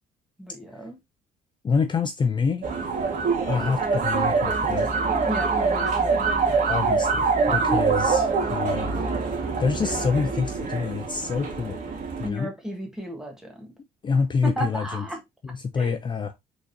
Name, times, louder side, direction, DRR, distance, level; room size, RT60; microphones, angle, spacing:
voice 1, 0.4-1.0 5.3-6.3 7.5-7.6 12.2-13.7 14.4-15.2 15.8-15.9, right 1 dB, 5° right, 1.8 m, -33 dB
voice 2, 1.6-2.6 3.5-4.9 6.7-9.3 9.6-11.8 12.2-12.5 14.0-15.0 15.4-16.3, left 5 dB, 25° left, 0.6 m, -27 dB
sound 1, 2.6-12.3, right 4 dB, 50° right, 1.8 m, -24 dB
4.8 x 3.9 x 2.7 m
cardioid pair, 110°, 17 cm